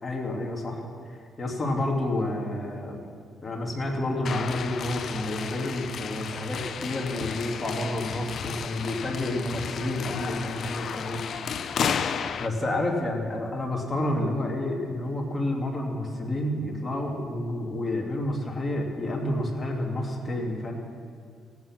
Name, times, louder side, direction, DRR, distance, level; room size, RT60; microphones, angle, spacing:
voice 1, 0.0-3.0 3.4-11.3 12.4-20.7, left 1 dB, 25° left, 0 dB, 2.5 m, -29 dB
tap dancing, 4.2-12.5, left 7 dB, 60° left, 0.5 m, -33 dB
17.5 x 8.5 x 6.1 m, 2.2 s
cardioid pair, 90°, 0 cm